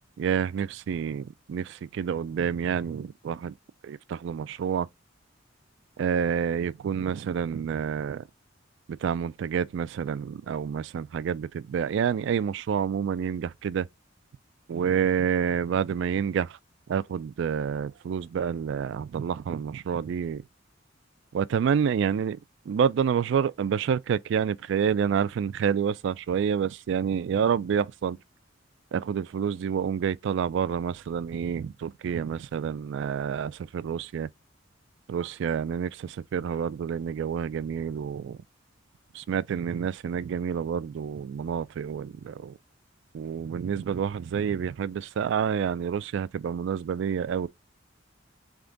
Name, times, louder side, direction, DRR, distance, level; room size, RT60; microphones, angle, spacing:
voice 1, 0.2-3.5 3.8-4.9 6.0-8.2 8.9-13.9 14.7-16.6 16.9-20.4 21.3-22.4 22.7-28.2 28.9-34.3 35.1-38.4 39.1-42.6 43.1-47.5, right 7 dB, 65° right, 0.3 m, -28 dB
3.6 x 3.4 x 3.8 m
head